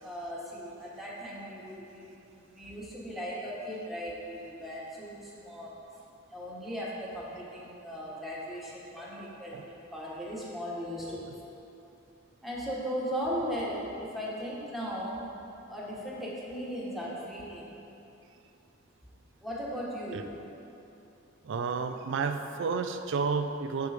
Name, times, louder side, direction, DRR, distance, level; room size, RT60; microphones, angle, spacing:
voice 1, 0.0-5.7 6.3-11.5 12.4-15.2 15.7-17.7 19.4-20.3, equal, ahead, -6 dB, 1.2 m, -37 dB
voice 2, 21.4-23.9, right 5 dB, 65° right, 8 dB, 0.4 m, -31 dB
6.7 x 4.6 x 4.9 m, 2.9 s
head